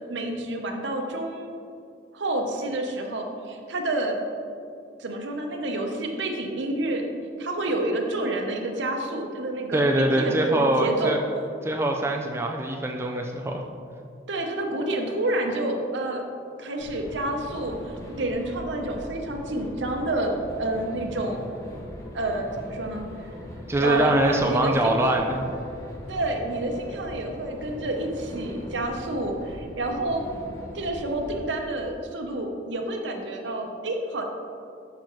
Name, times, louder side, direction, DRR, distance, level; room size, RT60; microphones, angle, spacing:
voice 1, 0.1-1.6 2.1-4.2 5.0-7.1 7.4-11.1 14.3-16.2 16.6-17.8 18.2-21.5 22.1-23.1 23.8-25.2 26.1-30.2 30.7-34.2, right 1 dB, 75° right, 3 dB, 0.8 m, -29 dB
voice 2, 9.7-11.2 11.6-13.6 23.7-25.4, right 1 dB, 15° right, 2 dB, 0.3 m, -23 dB
sound 1, 16.8-31.4, left 1 dB, 15° left, 0.7 m, -40 dB
6.8 x 5.8 x 3.0 m, 2.4 s
head